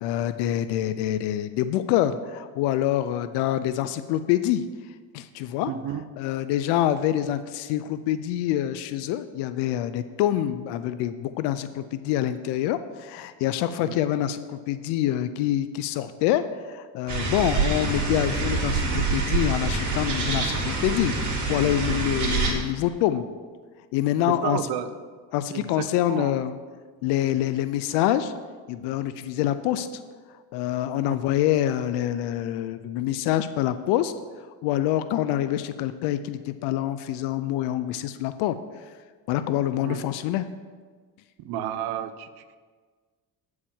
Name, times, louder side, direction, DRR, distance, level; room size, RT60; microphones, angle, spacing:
voice 1, 0.0-4.6 5.1-5.7 6.2-16.4 16.7-23.3 23.9-24.6 25.3-26.6 27.0-28.3 28.7-29.9 30.5-34.1 34.6-38.5 39.3-40.5, left 12 dB, 85° left, 12 dB, 0.5 m, -26 dB
voice 2, 5.6-6.0 13.8-14.0 24.3-24.9 25.5-26.4 31.1-31.2 39.8-40.0 41.4-42.6, right 10 dB, 70° right, 11 dB, 0.7 m, -32 dB
sound 1, 17.1-22.5, right 3 dB, 45° right, 2.3 m, -26 dB
8.7 x 4.8 x 7.0 m, 1.5 s
cardioid pair, 105°, 39 cm